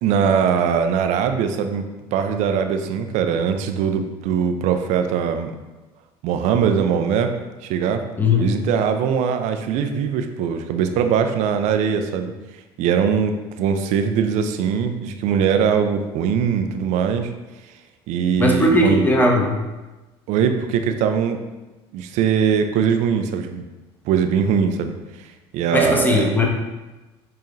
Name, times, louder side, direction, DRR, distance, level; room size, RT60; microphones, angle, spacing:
voice 1, 0.0-1.8 2.1-5.5 6.2-7.3 7.6-8.0 8.4-12.3 12.8-17.3 18.1-19.1 20.3-21.4 21.9-23.6 24.1-25.0 25.5-26.3, right 7 dB, 60° right, 7 dB, 0.4 m, -21 dB
voice 2, 8.2-8.5 18.4-19.6 25.7-26.5, left 1 dB, 15° left, 0 dB, 0.8 m, -18 dB
4.7 x 2.4 x 3.1 m, 1.1 s
hypercardioid pair, 75°, 14 cm